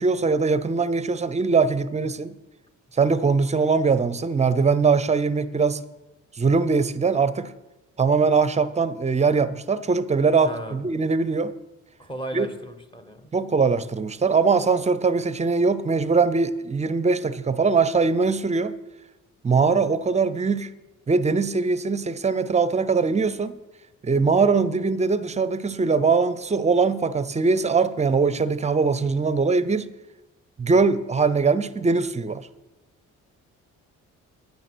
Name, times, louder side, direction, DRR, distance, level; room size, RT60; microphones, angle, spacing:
voice 1, 0.0-2.4 3.0-5.8 6.4-7.5 8.0-11.5 12.3-12.5 13.3-18.8 19.4-20.7 21.1-23.6 24.0-29.9 30.6-32.4, right 4 dB, 20° right, 0.6 m, -21 dB
voice 2, 10.4-10.8 12.0-13.3, right 1 dB, 15° left, 1.1 m, -35 dB
9.6 x 9.1 x 6.1 m
cardioid pair, 115°, 32 cm